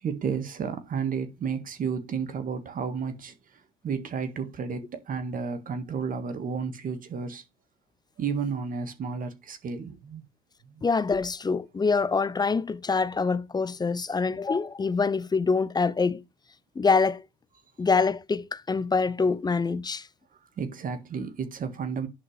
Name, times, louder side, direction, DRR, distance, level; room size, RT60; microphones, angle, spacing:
voice 1, 0.0-3.3 3.8-7.4 8.2-10.3 10.7-10.8 20.6-22.1, right 6 dB, 45° right, 1.7 m, -32 dB
voice 2, 10.8-16.2 16.8-17.2 17.8-20.1, left 4 dB, 20° left, 0.6 m, -25 dB
10.5 x 4.8 x 3.3 m
hypercardioid pair, 55°, 19 cm